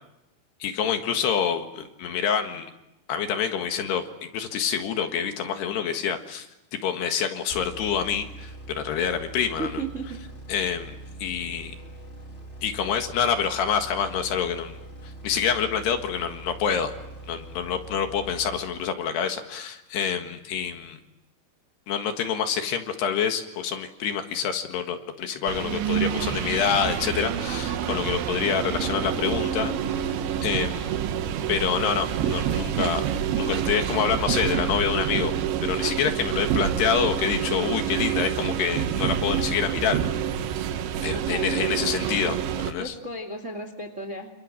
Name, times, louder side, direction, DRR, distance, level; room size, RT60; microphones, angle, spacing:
voice 1, 0.6-2.7 3.1-6.5 6.8-9.8 10.5-10.9 11.2-11.8 12.6-14.8 15.0-16.9 17.3-21.0 21.9-30.1 30.4-30.9 31.5-33.1 33.4-35.3 35.6-40.0 41.0-42.9, left 7 dB, 70° left, 6 dB, 3.6 m, -27 dB
sound 1, 7.5-19.2, right 2 dB, 20° left, 2.3 m, -42 dB
voice 2, 9.6-10.1 41.1-41.5 42.8-44.3, right 2 dB, 25° right, 7 dB, 2.0 m, -34 dB
sound 2, 25.5-42.7, right 9 dB, 80° right, 3.6 m, -27 dB
28.5 x 27.0 x 7.6 m, 0.90 s
omnidirectional pair, 5.3 m